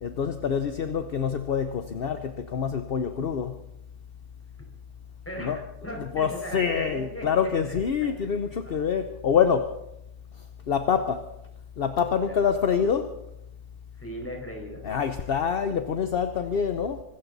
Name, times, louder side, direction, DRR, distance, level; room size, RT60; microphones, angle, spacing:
voice 1, 0.0-3.6 5.4-5.6 6.1-9.7 10.7-11.2 11.8-13.1 14.8-17.0, left 7 dB, 45° left, 8 dB, 0.8 m, -26 dB
voice 2, 5.2-7.3 7.7-7.8 8.2-8.8 12.2-12.6 14.0-14.8, equal, 10° left, 1 dB, 4.7 m, -38 dB
25.0 x 13.5 x 4.1 m, 0.82 s
omnidirectional pair, 1.7 m